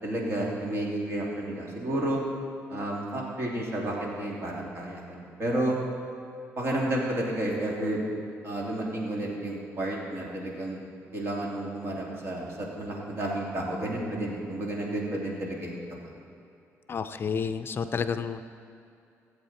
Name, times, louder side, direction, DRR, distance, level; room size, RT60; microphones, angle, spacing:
voice 1, 0.0-2.2 2.7-5.8 6.6-8.0 8.4-10.8 11.1-15.8, right 1 dB, 45° right, -3 dB, 2.8 m, -31 dB
voice 2, 16.9-18.5, left 6 dB, 40° left, 10 dB, 0.4 m, -30 dB
15.5 x 8.0 x 4.3 m, 2.6 s
cardioid pair, 100°, 6 cm